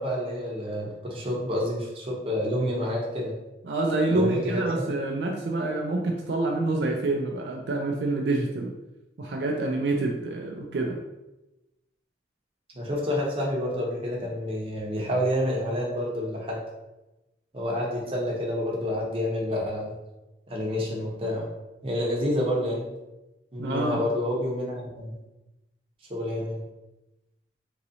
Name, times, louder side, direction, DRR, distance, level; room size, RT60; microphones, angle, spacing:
voice 1, 0.0-3.3 4.1-4.9 12.7-16.6 17.5-19.9 20.5-21.5 21.8-22.9 23.5-25.2 26.1-26.6, left 1 dB, 30° right, -3 dB, 0.8 m, -28 dB
voice 2, 3.6-8.7 9.2-11.0 23.6-24.0, right 2 dB, 70° right, 1 dB, 0.4 m, -27 dB
3.8 x 2.9 x 2.7 m, 0.99 s
head